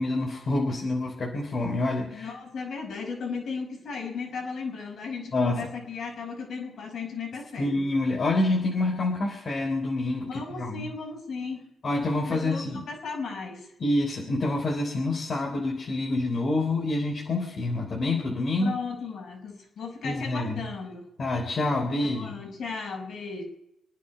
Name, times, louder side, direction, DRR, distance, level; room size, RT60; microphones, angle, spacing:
voice 1, 0.0-2.3 5.3-5.7 7.6-10.9 11.8-12.8 13.8-18.7 20.0-20.7 21.2-22.3, left 2 dB, 45° left, -1 dB, 3.4 m, -27 dB
voice 2, 2.1-7.8 10.3-11.6 12.3-13.7 18.6-21.0 22.0-23.4, left 5 dB, 60° left, 2 dB, 5.4 m, -35 dB
26.5 x 9.6 x 5.5 m, 0.90 s
cardioid pair, 90°, 0 cm